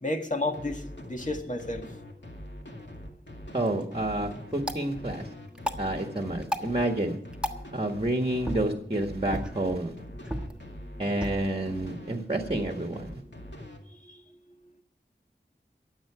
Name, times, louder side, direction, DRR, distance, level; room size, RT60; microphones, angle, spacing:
voice 1, 0.0-1.9 14.0-14.2, left 2 dB, 45° left, 4 dB, 1.9 m, -31 dB
sound 1, 0.5-13.8, left 1 dB, 85° left, 2.3 m, -43 dB
voice 2, 3.5-5.3 5.8-7.1 7.7-9.9 11.0-13.2, right 1 dB, 30° right, 4 dB, 1.7 m, -29 dB
sound 2, 3.6-13.6, equal, 5° right, 1.4 m, -39 dB
23.0 x 7.9 x 5.0 m, 0.64 s
wide cardioid pair, 50°, 18 cm